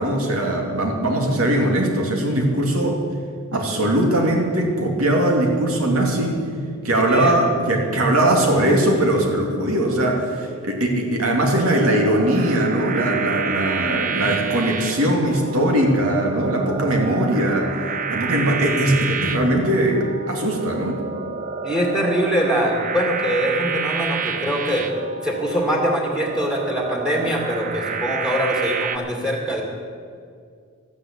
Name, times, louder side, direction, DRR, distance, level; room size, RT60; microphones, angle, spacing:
voice 1, 0.0-3.0 3.5-6.4 6.8-17.7 18.1-21.0, right 1 dB, 75° right, 1 dB, 2.6 m, -20 dB
sound 1, 11.5-29.0, right 5 dB, 40° right, 0.7 m, -29 dB
voice 2, 21.6-24.9 25.2-29.6, equal, 5° right, 0 dB, 2.2 m, -23 dB
13.0 x 9.7 x 8.6 m, 2.2 s
head